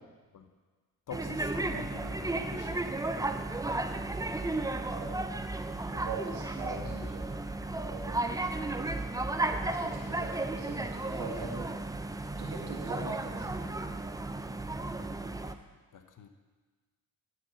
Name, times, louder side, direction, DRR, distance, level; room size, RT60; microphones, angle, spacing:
voice 1, 1.1-2.9 6.8-7.2 15.9-16.3, left 6 dB, 45° left, 7 dB, 1.1 m, -46 dB
sound 1, 1.1-15.5, right 2 dB, 10° right, 0.6 m, -34 dB
voice 2, 4.9-5.2 5.9-7.3 7.9-8.3 8.7-8.9 9.8-11.7 12.4-13.7, right 4 dB, 80° right, -1 dB, 2.1 m, -42 dB
11.5 x 4.7 x 6.4 m, 1.4 s
supercardioid pair, 50°, 42 cm